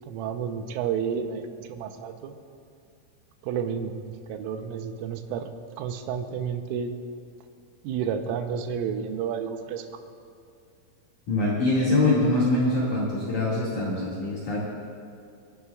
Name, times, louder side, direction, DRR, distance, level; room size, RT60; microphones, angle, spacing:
voice 1, 0.1-2.4 3.4-3.9 4.3-5.5 5.8-6.9 7.8-9.9, right 7 dB, 85° right, 7 dB, 3.4 m, -31 dB
voice 2, 11.3-14.6, left 2 dB, 50° left, -8 dB, 2.8 m, -24 dB
29.0 x 11.0 x 2.4 m, 2.4 s
omnidirectional pair, 5.8 m